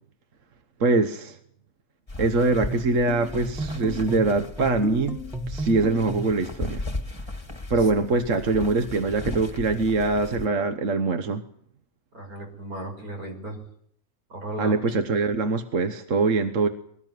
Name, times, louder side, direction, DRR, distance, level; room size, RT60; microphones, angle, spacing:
voice 1, 0.8-1.4 2.2-5.2 5.5-6.8 7.7-11.4 14.6-16.7, right 3 dB, 60° right, 7 dB, 1.5 m, -23 dB
sound 1, 2.1-10.5, left 2 dB, 20° left, 1.8 m, -37 dB
sound 2, 2.6-6.4, equal, ahead, 1.4 m, -34 dB
voice 2, 12.1-13.6 14.3-14.8, right 1 dB, 85° right, 3 dB, 6.3 m, -35 dB
22.0 x 18.5 x 9.4 m, 0.68 s
omnidirectional pair, 1.5 m